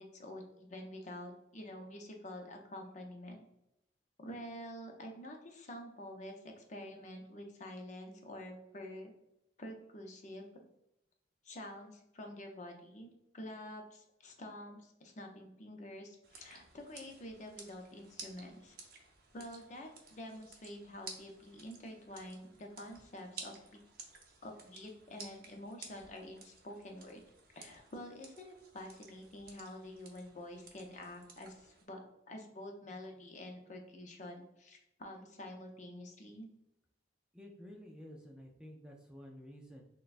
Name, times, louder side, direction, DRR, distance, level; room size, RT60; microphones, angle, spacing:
voice 1, 0.0-3.4 4.2-9.1 9.6-10.7 11.4-18.8 19.3-23.8 24.4-27.2 27.5-32.0 32.3-36.5, left 1 dB, 40° left, 3 dB, 0.6 m, -48 dB
sound 1, 16.2-31.8, right 4 dB, 55° right, 0.7 m, -54 dB
voice 2, 37.3-39.8, equal, 5° right, 0 dB, 0.4 m, -51 dB
6.1 x 2.2 x 2.5 m, 0.83 s
head